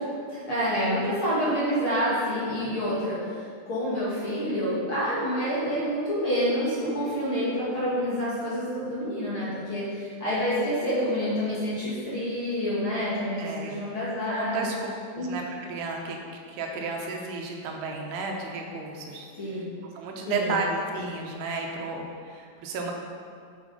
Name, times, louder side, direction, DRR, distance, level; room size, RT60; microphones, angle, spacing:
voice 1, 0.0-14.7 15.2-15.3 19.4-19.7 20.3-20.6, equal, 40° left, -9 dB, 2.3 m, -28 dB
voice 2, 13.4-13.8 14.3-14.8 15.1-15.4 15.7-16.2 16.5-19.6 20.0-22.9, right 4 dB, 80° right, 1 dB, 3.0 m, -33 dB
8.9 x 7.6 x 5.2 m, 2.2 s
omnidirectional pair, 4.7 m